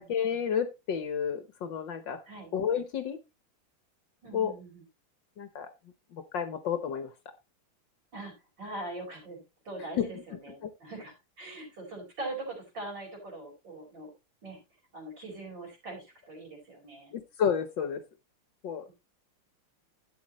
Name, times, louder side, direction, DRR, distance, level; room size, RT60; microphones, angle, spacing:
voice 1, 0.1-2.2 2.5-3.2 4.3-4.5 5.4-5.7 6.1-7.1 10.0-10.1 10.6-10.7 17.1-18.0 18.6-18.8, left 7 dB, 65° left, 10 dB, 1.5 m, -30 dB
voice 2, 4.2-4.8 8.1-14.1 14.4-14.6 14.9-17.2, right 2 dB, 55° right, 0 dB, 5.5 m, -42 dB
11.5 x 8.7 x 3.0 m, 0.25 s
omnidirectional pair, 2.4 m